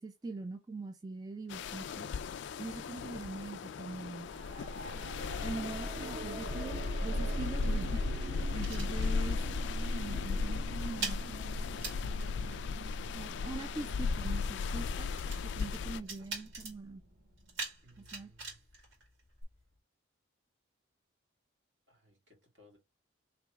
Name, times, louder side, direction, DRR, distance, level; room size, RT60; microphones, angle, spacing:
voice 1, 0.0-2.2 2.6-4.3 5.4-8.1 8.5-11.2 13.1-15.2 15.4-17.0 18.1-18.3, right 3 dB, 20° right, 0.4 m, -43 dB
sound 1, 1.5-16.0, left 5 dB, 60° left, 0.3 m, -37 dB
sound 2, 4.2-17.1 19.4-19.5, right 1 dB, 45° right, 1.0 m, -40 dB
voice 2, 4.6-5.2 17.8-18.6 21.9-22.8, equal, 65° right, 2.0 m, -62 dB
sound 3, 7.1-9.6 9.8-10.1 10.4-19.8, right 3 dB, 80° right, 2.3 m, -46 dB
3.4 x 3.0 x 4.5 m
head